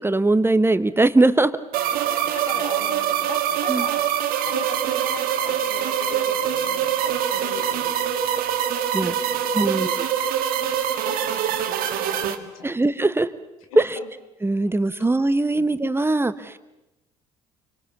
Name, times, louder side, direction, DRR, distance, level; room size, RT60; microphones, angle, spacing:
voice 1, 0.0-1.5 3.7-3.8 8.9-9.1 9.5-9.9 12.6-13.3 14.4-16.6, right 2 dB, 15° right, 13 dB, 1.2 m, -20 dB
sound 1, 1.7-12.4, right 9 dB, 55° right, 1.8 m, -24 dB
voice 2, 2.3-4.1 4.4-8.6 9.2-10.1 10.6-10.7 11.0-12.7 13.7-14.1 15.5-15.7, left 5 dB, 75° left, 7 dB, 2.3 m, -40 dB
27.5 x 24.5 x 7.2 m, 0.96 s
figure-of-eight pair, 55°, 18 cm